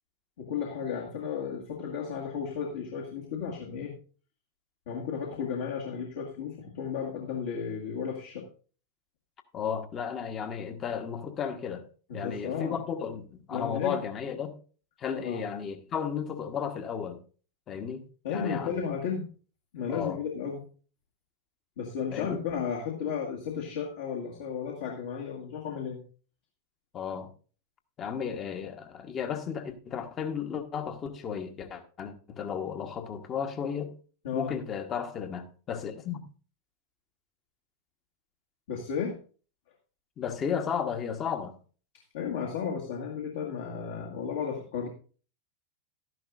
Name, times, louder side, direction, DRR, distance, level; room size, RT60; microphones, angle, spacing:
voice 1, 0.4-3.9 4.9-8.5 12.1-12.8 13.5-14.0 15.2-15.5 18.2-19.3 19.7-20.7 21.8-26.0 34.2-34.6 38.7-39.2 42.1-44.9, left 6 dB, 60° left, -1 dB, 1.8 m, -34 dB
voice 2, 9.5-11.9 12.1-14.5 15.0-17.2 17.7-18.7 19.9-20.2 22.1-22.3 26.9-27.3 28.0-33.9 34.3-36.2 40.2-41.6, left 7 dB, 30° left, 6 dB, 1.2 m, -34 dB
12.5 x 10.5 x 2.5 m, 0.39 s
figure-of-eight pair, 90°, 0 cm